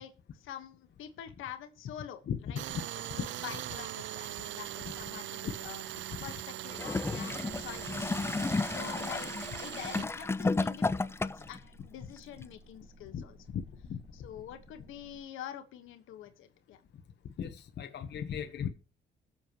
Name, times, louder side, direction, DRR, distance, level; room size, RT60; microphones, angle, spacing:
voice 1, 0.0-2.2 2.5-2.9 3.1-5.9 6.2-9.3 9.6-13.4 14.1-16.8, left 10 dB, 85° left, 1.5 m, -46 dB
voice 2, 2.3-2.6 5.4-5.5 7.1-7.2 13.1-14.0 17.4-18.7, left 8 dB, 60° left, 1.1 m, -37 dB
Tools, 2.6-10.1, right 14 dB, 70° right, 0.5 m, -41 dB
Gurgling / Toilet flush, 6.7-11.6 12.4-12.5, left 3 dB, 15° left, 0.4 m, -32 dB
sound 1, 7.5-15.2, right 1 dB, 30° right, 4.6 m, -57 dB
21.0 x 7.1 x 3.0 m
cardioid pair, 90°, 20 cm